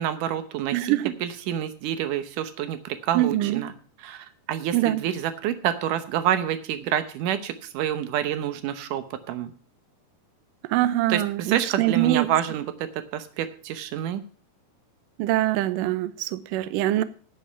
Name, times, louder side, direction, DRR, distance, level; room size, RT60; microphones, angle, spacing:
voice 1, 0.0-3.7 4.0-9.5 11.1-14.2, right 10 dB, 75° right, 2.0 m, -28 dB
voice 2, 0.7-1.1 3.1-3.6 4.7-5.0 10.6-12.3 15.2-17.0, right 15 dB, 90° right, 1.9 m, -23 dB
11.0 x 8.3 x 5.8 m
omnidirectional pair, 4.8 m